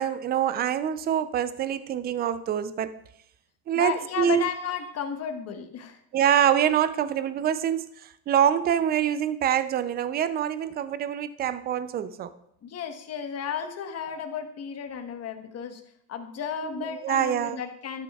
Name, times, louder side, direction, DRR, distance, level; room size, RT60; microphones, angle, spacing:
voice 1, 0.0-2.9 3.7-4.4 6.1-7.9 8.3-12.3 16.8-17.6, right 9 dB, 20° right, 0.4 m, -25 dB
voice 2, 3.7-6.0 12.6-15.8 16.1-18.0, left 7 dB, 30° left, 1.2 m, -33 dB
12.0 x 9.6 x 2.3 m
supercardioid pair, 110°, 49 cm